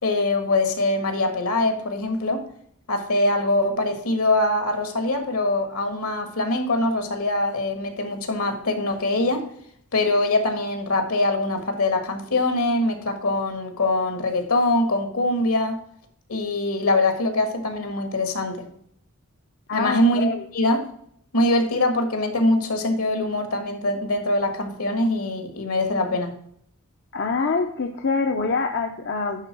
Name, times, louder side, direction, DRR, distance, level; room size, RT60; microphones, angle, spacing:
voice 1, 0.0-2.5 2.9-9.4 9.9-15.8 16.3-18.7 19.7-20.3 20.5-20.9 21.3-26.3, left 2 dB, 70° left, 7 dB, 1.7 m, -23 dB
voice 2, 19.7-20.4 27.1-29.5, left 4 dB, 50° left, 4 dB, 0.7 m, -25 dB
10.5 x 3.8 x 6.0 m, 0.67 s
head